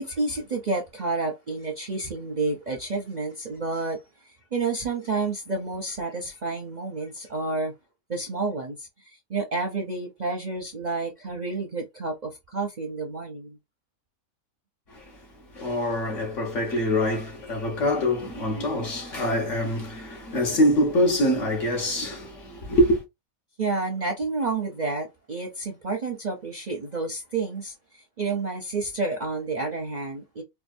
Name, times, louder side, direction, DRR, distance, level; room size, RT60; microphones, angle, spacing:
voice 1, 0.0-7.7 8.1-13.6 23.6-30.4, right 3 dB, 40° right, 0.6 m, -30 dB
voice 2, 15.5-23.0, left 1 dB, 60° left, 1.6 m, -24 dB
4.5 x 2.4 x 2.5 m
omnidirectional pair, 1.5 m